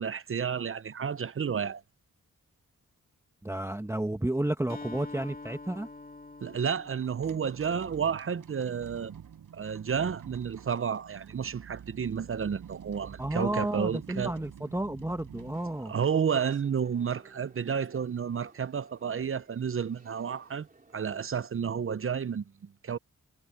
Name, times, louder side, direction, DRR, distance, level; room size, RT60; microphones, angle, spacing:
voice 1, 0.0-1.8 6.4-9.1 9.5-14.3 15.9-20.7 20.9-23.0, right 7 dB, 40° right, 0.7 m, -31 dB
voice 2, 3.4-5.9 13.2-16.0, right 1 dB, 10° right, 1.4 m, -31 dB
Acoustic guitar, 4.7-8.6, left 3 dB, 25° left, 2.2 m, -46 dB
sound 1, 7.0-16.5, right 8 dB, 90° right, 5.6 m, -48 dB
sound 2, 15.3-21.3, right 3 dB, 25° right, 3.2 m, -58 dB
cardioid pair, 75°, 32 cm